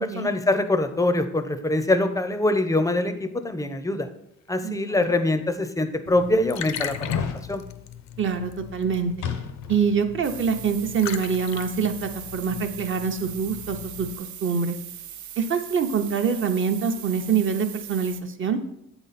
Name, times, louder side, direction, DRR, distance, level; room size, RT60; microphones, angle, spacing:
voice 1, 0.0-4.1 4.5-7.0 7.5-7.6, left 2 dB, 10° left, 9 dB, 0.5 m, -23 dB
voice 2, 4.6-5.0 8.2-9.1 9.7-14.8 15.4-18.6, right 6 dB, 40° right, 6 dB, 0.8 m, -25 dB
sound 1, 4.9-5.0 5.7-5.8 6.8-7.4 9.2-9.9 10.2-10.3, left 6 dB, 90° left, 0.8 m, -30 dB
Liquid, 6.1-14.2, left 10 dB, 65° left, 0.5 m, -39 dB
sound 2, 10.2-18.2, right 10 dB, 70° right, 0.5 m, -40 dB
7.9 x 4.0 x 4.1 m, 0.78 s
cardioid pair, 90°, 30 cm